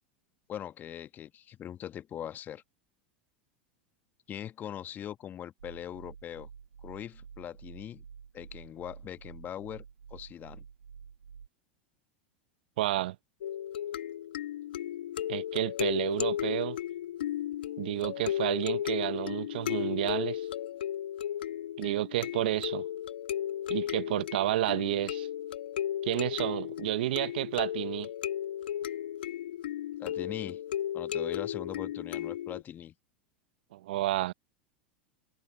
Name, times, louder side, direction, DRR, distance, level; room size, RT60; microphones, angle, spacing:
voice 1, 0.5-2.6 4.3-6.5 6.8-8.0 8.3-9.8 10.1-10.6 30.0-30.6 30.9-32.9, left 10 dB, 35° left, 1.4 m, -41 dB
sound 1, 5.6-11.5, right 6 dB, 85° right, 2.0 m, -50 dB
voice 2, 12.8-13.2 15.3-16.8 17.8-20.5 21.8-22.8 23.7-25.3 26.0-28.1 33.7-34.3, right 15 dB, 65° right, 0.9 m, -31 dB
sound 2, 13.4-32.6, left 11 dB, 70° left, 1.8 m, -35 dB
hypercardioid pair, 85°, 6 cm